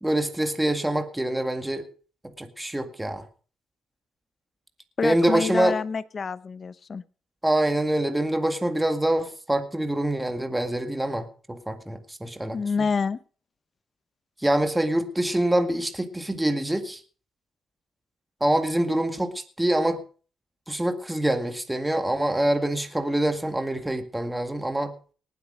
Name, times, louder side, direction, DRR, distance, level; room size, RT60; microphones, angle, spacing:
voice 1, 0.0-1.9 2.4-3.3 5.0-5.8 7.4-12.6 14.4-17.0 18.4-20.0 20.7-24.9, right 1 dB, 10° right, 8 dB, 1.9 m, -25 dB
voice 2, 5.0-7.0 12.5-13.2, left 5 dB, 40° left, 16 dB, 0.8 m, -27 dB
19.0 x 8.3 x 5.1 m, 0.40 s
cardioid pair, 90°, 0 cm